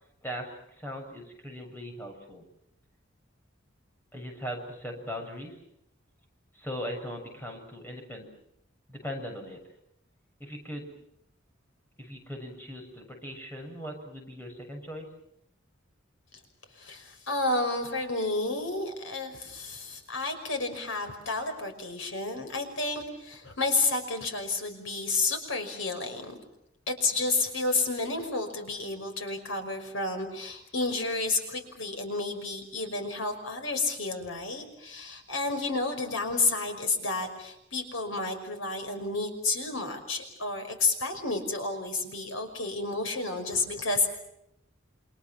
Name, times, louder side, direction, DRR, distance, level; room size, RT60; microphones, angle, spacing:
voice 1, 0.2-2.4 4.1-5.6 6.5-8.3 8.9-9.6 10.4-10.9 12.0-15.1, equal, 10° left, 1 dB, 6.8 m, -39 dB
voice 2, 16.7-26.4 26.9-44.2, left 3 dB, 90° left, 6 dB, 5.7 m, -31 dB
28.5 x 27.0 x 6.2 m, 0.78 s
head